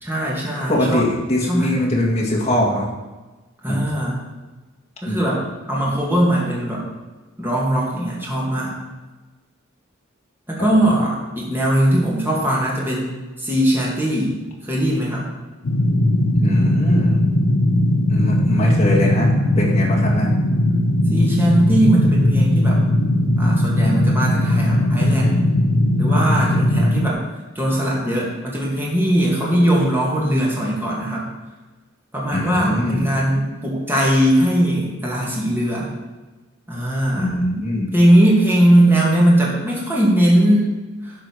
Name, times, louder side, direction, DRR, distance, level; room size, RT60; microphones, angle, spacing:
voice 1, 0.0-1.0 1.4-1.7 3.6-4.2 5.0-6.9 7.4-8.7 10.5-13.1 13.4-14.4 14.6-15.2 21.1-22.8 23.4-25.4 25.9-27.2 27.6-31.2 32.1-35.9 36.7-37.4 37.9-40.7 41.0-41.1, right 1 dB, 10° right, -5 dB, 2.2 m, -19 dB
voice 2, 0.7-2.9 3.7-3.8 5.1-5.2 10.6-10.7 16.4-17.2 18.1-20.3 32.3-33.1 37.1-37.9, left 1 dB, 30° left, -3 dB, 1.9 m, -21 dB
sound 1, 15.6-27.1, left 1 dB, 80° left, 0.7 m, -18 dB
10.5 x 4.9 x 6.3 m, 1.2 s
head